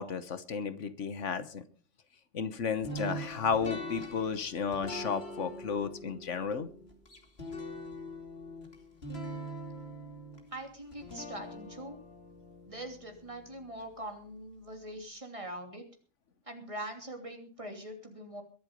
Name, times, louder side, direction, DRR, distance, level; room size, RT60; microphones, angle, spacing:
voice 1, 0.0-1.6 2.3-6.7, left 6 dB, 75° left, 12 dB, 1.5 m, -33 dB
sound 1, 2.8-13.9, equal, 55° left, 3.1 m, -43 dB
voice 2, 10.5-12.0 12.6-15.8 16.5-18.4, right 1 dB, 25° right, 4 dB, 3.0 m, -43 dB
22.5 x 8.0 x 5.2 m, 0.41 s
omnidirectional pair, 1.3 m